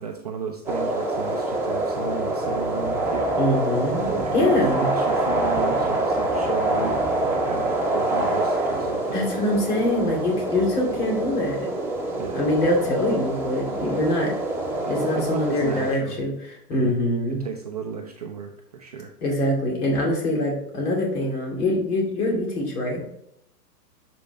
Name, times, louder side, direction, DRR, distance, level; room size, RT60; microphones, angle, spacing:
voice 1, 0.0-3.3 4.0-7.0 7.3-9.2 12.2-12.4 14.9-16.2 16.7-17.0 17.3-19.1, right 6 dB, 30° right, 2 dB, 0.3 m, -34 dB
sound 1, 0.7-15.9, right 1 dB, 5° right, 1.0 m, -26 dB
voice 2, 3.4-4.9 9.1-11.7 12.3-14.3 14.9-16.3 16.7-17.4 19.2-23.0, left 1 dB, 70° left, -1 dB, 2.5 m, -24 dB
6.7 x 5.1 x 3.2 m, 0.75 s
hypercardioid pair, 120°, 47 cm